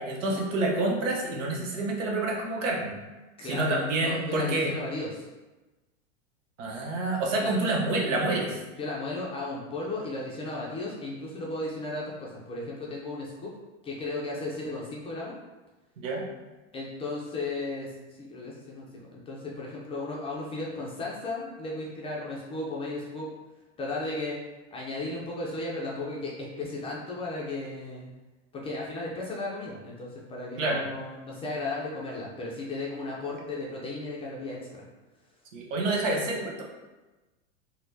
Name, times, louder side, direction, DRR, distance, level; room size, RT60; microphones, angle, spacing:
voice 1, 0.0-3.0 3.4-4.7 6.6-8.6 16.0-16.2 30.6-30.8 35.5-36.6, right 2 dB, 80° right, -1 dB, 0.9 m, -28 dB
voice 2, 3.4-5.3 7.4-7.5 8.7-13.5 13.8-15.4 16.7-17.9 18.2-23.3 23.8-24.4 24.7-28.1 28.5-34.8, left 2 dB, 15° left, -4 dB, 0.4 m, -35 dB
4.1 x 2.1 x 2.7 m, 1.1 s
hypercardioid pair, 115°, 37 cm